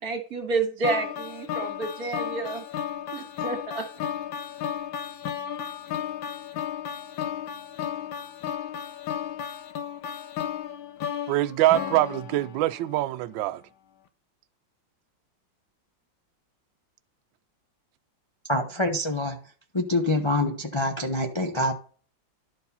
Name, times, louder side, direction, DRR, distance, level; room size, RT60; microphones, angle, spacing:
voice 1, 0.0-2.6 3.1-3.9, right 3 dB, 50° right, 2.2 m, -30 dB
sound 1, 0.8-13.0, left 9 dB, 75° left, 1.5 m, -34 dB
voice 2, 11.3-13.6, right 15 dB, 80° right, 1.3 m, -24 dB
voice 3, 18.5-19.4 19.7-21.7, left 1 dB, 40° left, 0.4 m, -25 dB
11.5 x 4.5 x 5.4 m
omnidirectional pair, 2.1 m